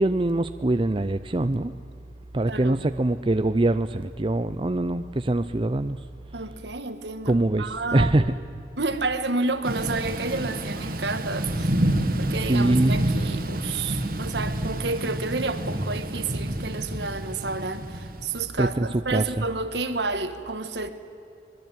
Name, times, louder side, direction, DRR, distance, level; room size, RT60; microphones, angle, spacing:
voice 1, 0.0-1.7 2.3-6.0 7.3-8.4 12.1-12.2 12.4-13.0 18.6-19.2, right 2 dB, 30° right, 10 dB, 0.5 m, -23 dB
voice 2, 2.5-2.8 6.3-8.3 8.8-11.8 12.2-20.9, right 3 dB, 70° right, 10 dB, 1.7 m, -30 dB
Thunder / Rain, 9.6-18.5, right 1 dB, 50° right, 2.0 m, -28 dB
25.0 x 21.5 x 9.0 m, 2.7 s
head